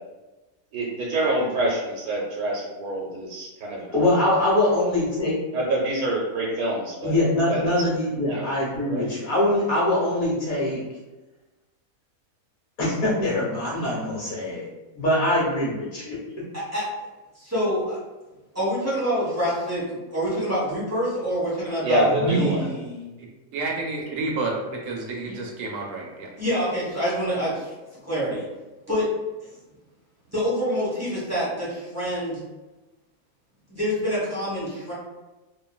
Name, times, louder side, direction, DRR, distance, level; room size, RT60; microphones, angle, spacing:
voice 1, 0.7-3.8 5.5-7.1 7.5-7.7 8.3-8.5 8.9-9.1 21.8-22.6, right 2 dB, 85° right, -3 dB, 1.1 m, -26 dB
voice 2, 3.9-5.4 7.0-10.8 12.8-14.7 14.9-16.1 22.1-22.7, left 1 dB, 65° left, -7 dB, 1.5 m, -23 dB
voice 3, 17.3-18.0 18.5-19.8 20.1-23.1 26.4-27.7 28.0-28.5 28.9-29.1 30.3-32.4 33.7-34.9, equal, 10° right, -9 dB, 1.0 m, -26 dB
voice 4, 23.5-24.5 24.8-26.3, right 3 dB, 70° right, 0 dB, 0.9 m, -30 dB
3.0 x 2.5 x 2.2 m, 1.1 s
omnidirectional pair, 1.6 m